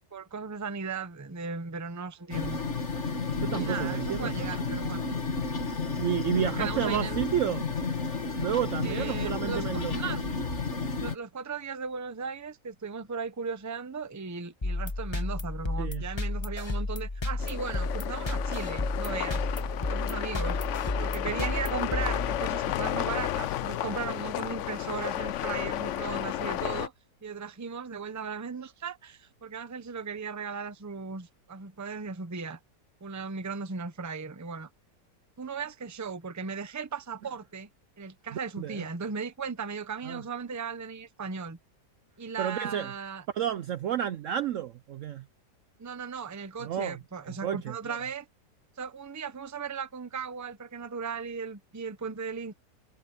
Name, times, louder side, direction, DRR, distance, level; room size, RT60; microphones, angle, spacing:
voice 1, 0.0-2.6 3.5-5.0 6.3-7.2 8.8-10.2 11.0-19.5 19.9-20.6 21.0-26.9 27.2-32.6 33.0-34.7 35.4-37.7 38.0-41.6 42.2-43.2 45.8-48.3 48.8-52.5, right 5 dB, 15° right, 0.6 m, -37 dB
sound 1, 2.3-11.2, left 4 dB, 45° left, 2.5 m, -32 dB
voice 2, 3.4-4.6 6.0-7.6 8.4-10.0 15.8-16.0 38.6-38.8 40.0-40.2 42.4-42.9 43.3-45.2 46.6-47.0 47.4-48.0, right 10 dB, 65° right, 0.8 m, -31 dB
sound 2, 14.6-22.8, left 2 dB, 20° left, 1.0 m, -32 dB
sound 3, 17.4-26.9, left 12 dB, 70° left, 0.7 m, -32 dB
omnidirectional pair, 1.8 m